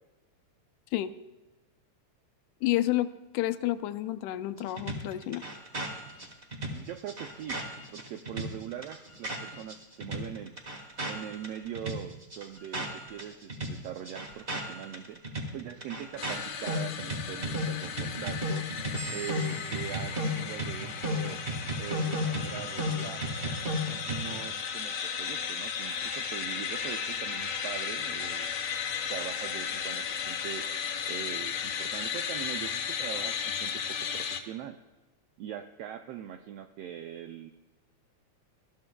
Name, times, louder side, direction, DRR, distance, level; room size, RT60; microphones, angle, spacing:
voice 1, 2.6-5.4, left 14 dB, 85° left, 10 dB, 2.0 m, -30 dB
sound 1, 4.8-9.7 10.0-13.2 13.5-24.4, equal, 30° right, 1.2 m, -34 dB
voice 2, 6.7-7.6 7.9-10.5 11.1-18.7 19.1-21.4 21.8-23.3 24.1-28.5 29.1-30.7 31.0-34.8 35.4-37.5, right 10 dB, 85° right, 6 dB, 1.4 m, -42 dB
sound 2, 16.2-34.4, left 7 dB, 70° left, 2.0 m, -35 dB
20.5 x 13.0 x 2.3 m, 1.1 s
omnidirectional pair, 3.4 m